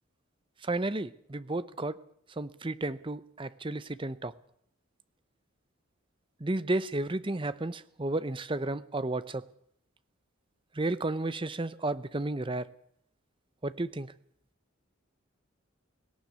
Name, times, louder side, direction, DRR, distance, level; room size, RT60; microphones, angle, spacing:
voice 1, 0.6-2.0 2.4-4.3 6.4-9.4 10.8-12.7 13.6-14.1, right 2 dB, 25° right, 15 dB, 0.7 m, -32 dB
18.0 x 18.0 x 8.3 m, 0.68 s
head